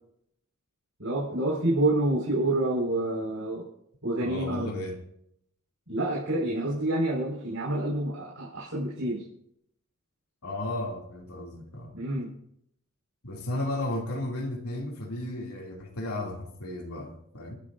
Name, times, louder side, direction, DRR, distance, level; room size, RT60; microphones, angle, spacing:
voice 1, 1.0-3.6 4.0-4.7 5.9-9.2 11.9-12.3, right 1 dB, 75° right, -6 dB, 4.9 m, -28 dB
voice 2, 4.2-4.9 10.4-11.9 13.2-17.5, left 1 dB, 85° left, 0 dB, 2.7 m, -34 dB
30.0 x 11.5 x 2.6 m, 0.73 s
head